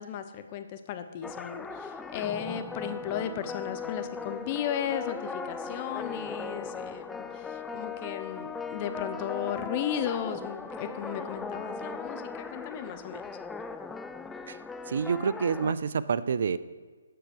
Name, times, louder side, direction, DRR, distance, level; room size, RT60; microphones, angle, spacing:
voice 1, 0.0-13.2, left 9 dB, 30° left, 9 dB, 0.7 m, -35 dB
sound 1, 1.2-15.7, left 4 dB, 5° left, 0.3 m, -38 dB
voice 2, 14.9-16.6, right 6 dB, 60° right, 15 dB, 0.5 m, -28 dB
7.7 x 5.9 x 6.6 m, 1.4 s
hypercardioid pair, 145°, 0 cm